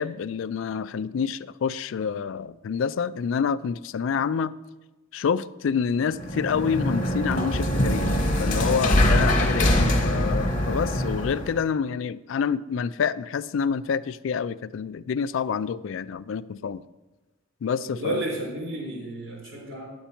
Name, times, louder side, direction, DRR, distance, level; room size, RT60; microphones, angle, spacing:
voice 1, 0.0-4.5 5.1-8.1 8.4-16.8 17.6-18.2, left 6 dB, 70° left, 17 dB, 0.3 m, -27 dB
sound 1, 6.1-11.6, left 1 dB, 40° left, 1.2 m, -23 dB
voice 2, 17.8-19.9, right 1 dB, 70° right, -3 dB, 3.8 m, -32 dB
10.5 x 7.9 x 4.4 m, 1.1 s
head